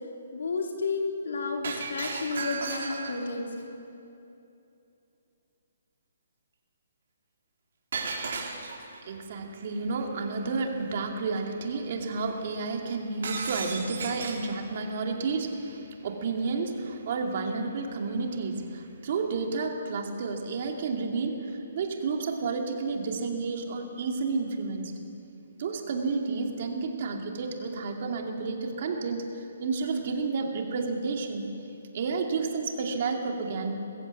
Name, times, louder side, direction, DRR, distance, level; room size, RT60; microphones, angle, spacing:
voice 1, 0.3-3.7, left 4 dB, 75° left, 1 dB, 3.7 m, -31 dB
Shatter, 1.6-3.3 7.9-9.0 13.2-14.5, right 4 dB, 60° right, 4.0 m, -34 dB
voice 2, 9.0-24.9 25.6-31.4 31.9-33.7, right 4 dB, 40° right, 2 dB, 2.5 m, -31 dB
22.0 x 15.0 x 8.4 m, 2.7 s
hypercardioid pair, 170°, 0 cm